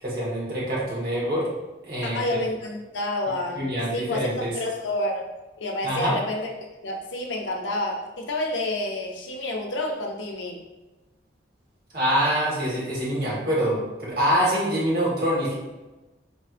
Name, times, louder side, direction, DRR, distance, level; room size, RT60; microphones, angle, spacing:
voice 1, 0.0-1.5 1.8-2.4 3.5-4.5 5.8-6.1 11.9-15.5, equal, 55° right, -6 dB, 1.4 m, -25 dB
voice 2, 2.0-5.3 5.6-10.6, left 1 dB, 90° left, 1 dB, 0.6 m, -29 dB
4.4 x 3.1 x 2.5 m, 1.1 s
head